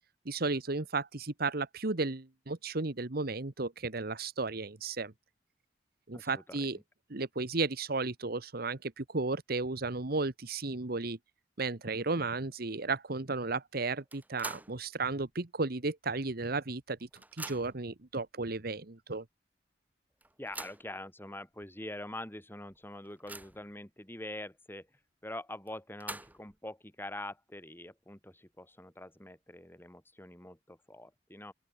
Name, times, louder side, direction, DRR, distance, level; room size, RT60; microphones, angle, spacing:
voice 1, 0.2-5.1 6.1-6.8 7.1-11.2 11.6-17.1 17.4-19.2, right 3 dB, 60° right, 1.3 m, -34 dB
voice 2, 6.1-6.8 20.4-24.9 25.2-31.5, left 1 dB, 10° left, 7.1 m, -44 dB
sound 1, 14.1-14.8 15.2-15.3 16.4-16.5 16.8-17.9 18.7-18.8 19.2-19.3 20.2-20.9 21.6-21.7 22.1-22.2 22.7-23.7 25.7-26.6, right 2 dB, 10° right, 1.6 m, -45 dB
open air
head